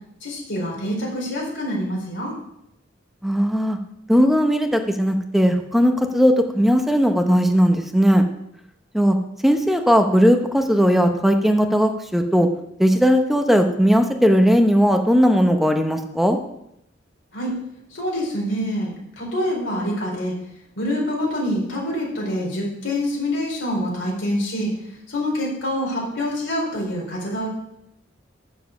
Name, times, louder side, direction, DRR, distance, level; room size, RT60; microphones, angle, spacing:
voice 1, 0.2-2.3 17.3-17.6 17.9-20.3 20.8-24.7 25.1-27.5, equal, 75° left, -3 dB, 3.9 m, -26 dB
voice 2, 3.2-3.8 4.1-8.2 8.9-9.2 9.4-12.5 12.8-16.4, equal, ahead, 5 dB, 0.7 m, -17 dB
7.2 x 7.1 x 6.5 m, 0.80 s
head